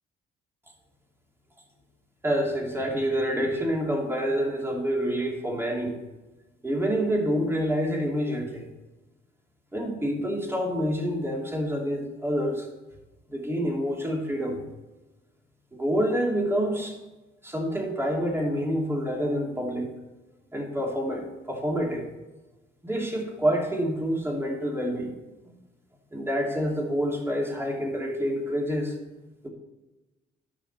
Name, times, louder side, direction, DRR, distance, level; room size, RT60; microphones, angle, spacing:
voice 1, 2.2-6.0 6.6-8.7 9.7-12.7 13.3-14.6 15.7-17.0 17.4-19.9 20.5-22.0 22.8-25.1 25.4-25.5 26.1-28.9 29.4-29.5, equal, 10° right, -1 dB, 2.9 m, -27 dB
13.5 x 6.2 x 4.4 m, 1.1 s
cardioid pair, 90°, 20 cm